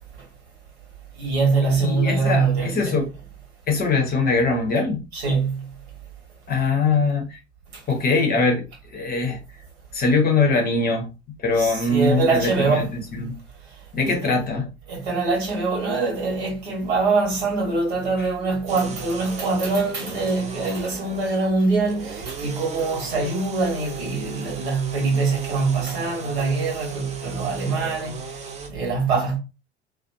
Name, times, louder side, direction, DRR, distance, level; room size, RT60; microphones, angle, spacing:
voice 1, 1.2-3.0 5.1-5.7 11.6-12.9 14.0-14.1 14.9-28.2 28.7-29.4, right 3 dB, 65° right, 1.4 m, -23 dB
voice 2, 1.8-3.1 3.7-5.0 6.5-7.4 7.9-8.7 8.9-9.4 9.9-11.1 11.4-13.4 13.9-14.7 18.2-18.3, left 3 dB, 25° left, 0.7 m, -22 dB
sound 1, 18.7-28.7, right 5 dB, 20° right, 0.5 m, -37 dB
2.4 x 2.2 x 2.5 m
figure-of-eight pair, 70°, 34 cm